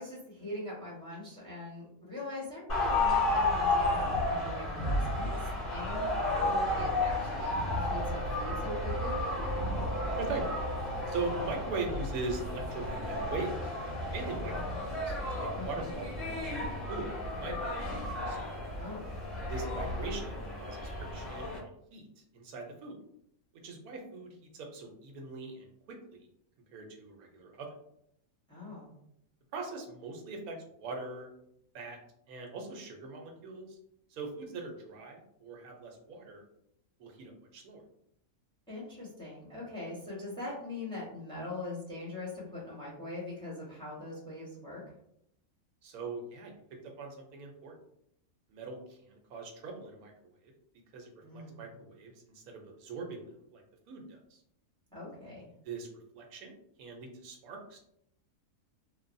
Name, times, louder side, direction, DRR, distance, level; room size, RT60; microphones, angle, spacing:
voice 1, 0.0-9.2 14.5-14.7 15.5-15.9 18.8-19.0 28.5-28.9 38.7-44.8 51.2-51.6 54.9-55.5, left 2 dB, 5° left, -6 dB, 0.8 m, -42 dB
sound 1, 2.7-21.6, left 2 dB, 40° left, 1.5 m, -33 dB
sound 2, 7.5-16.9, equal, 85° left, 1.2 m, -44 dB
voice 2, 10.1-10.5 11.1-13.8 14.1-17.7 18.0-18.4 19.5-23.0 23.6-26.3 26.7-27.7 29.5-31.3 31.7-32.0 32.3-33.8 34.1-36.4 37.0-37.8 45.8-47.8 48.5-50.5 50.9-54.4 55.6-55.9 56.1-57.8, right 3 dB, 80° right, 2 dB, 1.1 m, -41 dB
3.2 x 2.2 x 2.5 m, 0.75 s
omnidirectional pair, 1.5 m